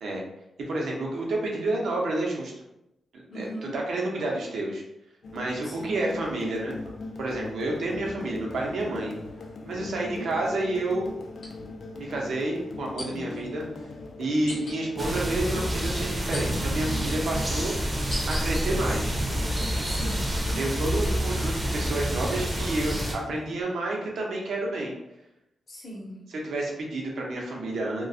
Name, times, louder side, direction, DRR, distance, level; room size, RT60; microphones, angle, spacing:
voice 1, 0.7-2.5 3.1-3.5 3.7-4.8 5.3-6.9 7.2-9.1 9.7-11.1 12.0-13.6 14.2-17.7 18.3-19.2 20.6-24.9 26.4-28.1, right 2 dB, 80° right, -1 dB, 0.6 m, -29 dB
voice 2, 3.3-3.8 5.6-6.1 9.8-10.3 19.8-20.4 25.7-26.2, equal, 40° left, -9 dB, 0.7 m, -39 dB
sound 1, 5.2-23.6, left 3 dB, 60° left, 0.3 m, -40 dB
sound 2, 11.4-11.5 13.0-13.4 14.5-14.8 16.3-16.9 17.5-18.4 19.0-19.6 20.1-22.1, left 2 dB, 85° left, 0.7 m, -42 dB
birds singing in the autumn forest - rear, 15.0-23.1, right 1 dB, 25° right, 0.5 m, -28 dB
2.3 x 2.1 x 2.5 m, 0.88 s
wide cardioid pair, 120°, 0 cm